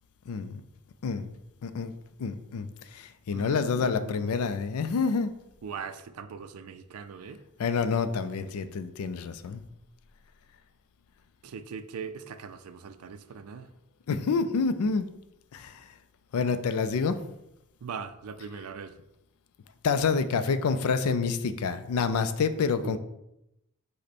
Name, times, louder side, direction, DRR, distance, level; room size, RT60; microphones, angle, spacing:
voice 1, 0.3-0.6 1.0-1.3 1.6-1.9 2.2-5.3 7.6-9.6 14.1-15.1 15.5-15.8 16.3-17.2 19.8-23.0, left 5 dB, 75° left, 11 dB, 0.4 m, -28 dB
voice 2, 3.3-4.4 5.6-7.4 11.4-13.7 17.8-18.9 22.8-23.0, right 5 dB, 75° right, 11 dB, 0.4 m, -40 dB
5.1 x 2.1 x 4.2 m, 0.85 s
head